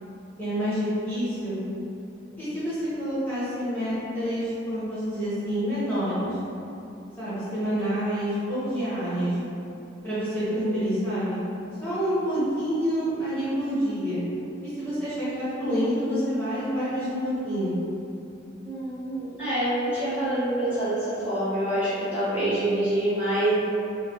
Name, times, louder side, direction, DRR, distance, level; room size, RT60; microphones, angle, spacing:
voice 1, 0.4-1.6 2.4-6.3 7.2-9.4 10.0-11.4 11.8-14.2 14.6-17.7, equal, 10° left, -14 dB, 1.3 m, -27 dB
voice 2, 18.6-23.5, right 1 dB, 10° right, -16 dB, 1.3 m, -26 dB
4.9 x 2.2 x 3.0 m, 2.8 s
head